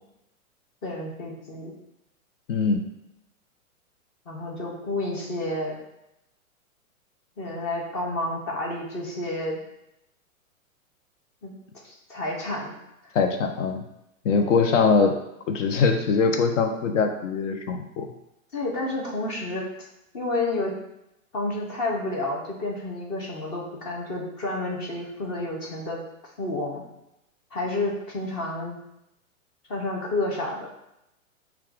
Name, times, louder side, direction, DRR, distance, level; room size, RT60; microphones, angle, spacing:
voice 1, 0.8-1.7 4.3-5.8 7.4-9.6 11.4-11.6 11.8-12.8 14.4-14.5 18.5-19.6 20.1-20.8 21.3-26.0 26.4-26.8 27.5-28.8 29.7-30.7, left 2 dB, 20° left, -2 dB, 0.5 m, -30 dB
voice 2, 2.5-2.8 13.1-13.8 14.2-15.1 15.5-18.0, left 5 dB, 60° left, 5 dB, 0.7 m, -22 dB
5.4 x 2.3 x 2.4 m, 0.85 s
hypercardioid pair, 140°, 42 cm